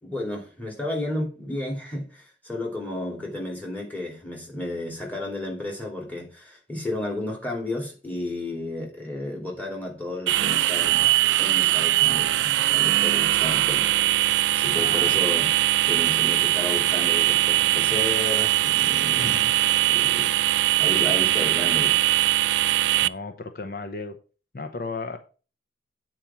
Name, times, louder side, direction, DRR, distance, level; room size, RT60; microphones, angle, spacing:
voice 1, 0.0-11.1 11.4-13.9 14.5-19.4 19.9-20.3 20.8-22.0, left 1 dB, 10° left, 2.7 m, -32 dB
sound 1, 10.3-23.1, right 15 dB, 90° right, 0.3 m, -21 dB
voice 2, 14.7-15.1 19.2-19.5 23.0-24.2 24.5-25.2, left 3 dB, 55° left, 0.8 m, -34 dB
8.7 x 4.6 x 5.7 m
head